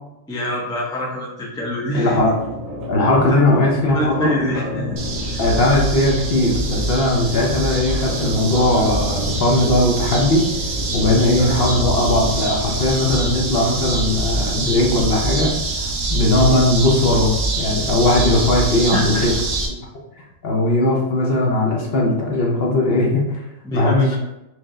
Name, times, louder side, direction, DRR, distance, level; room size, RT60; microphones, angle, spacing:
voice 1, 0.3-2.2 3.3-3.4 3.9-5.4 18.9-19.2 23.6-24.2, equal, 5° left, -3 dB, 0.4 m, -25 dB
voice 2, 1.9-2.3 2.9-4.3 5.4-10.5 10.9-19.3 20.4-23.4 23.7-24.2, left 1 dB, 55° left, -2 dB, 0.9 m, -18 dB
sound 1, 2.2-13.2, left 1 dB, 85° right, 1.8 m, -30 dB
sound 2, 5.0-19.7, right 2 dB, 60° right, 0.9 m, -24 dB
4.5 x 2.5 x 3.1 m, 0.93 s
omnidirectional pair, 1.3 m